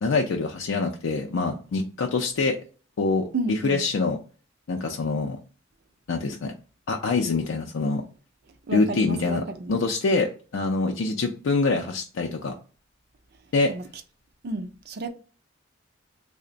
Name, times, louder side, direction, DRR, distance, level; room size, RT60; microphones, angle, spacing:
voice 1, 0.0-2.6 3.0-4.2 4.7-5.4 6.1-6.5 6.9-8.0 8.7-9.4 9.7-12.5 13.5-13.7, left 3 dB, 85° left, 0.4 m, -25 dB
voice 2, 3.3-3.9 8.7-9.8 13.7-13.9 14.4-15.1, right 2 dB, 55° right, 0.5 m, -31 dB
3.3 x 2.1 x 3.7 m
head